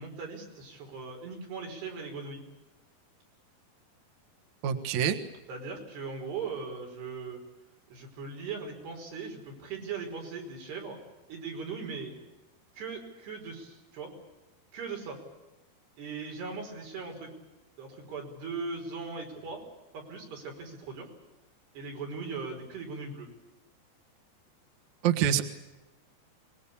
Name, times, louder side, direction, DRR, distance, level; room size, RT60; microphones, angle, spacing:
voice 1, 0.0-2.4 5.5-7.4 7.9-11.0 11.3-12.2 12.7-14.1 14.7-15.2 16.0-17.3 17.8-19.6 19.9-21.1 21.8-23.3, right 4 dB, 85° right, 1 dB, 7.1 m, -39 dB
voice 2, 4.6-5.2 25.0-25.4, right 9 dB, 55° right, 6 dB, 2.4 m, -25 dB
24.5 x 21.0 x 8.6 m, 1.0 s
omnidirectional pair, 4.6 m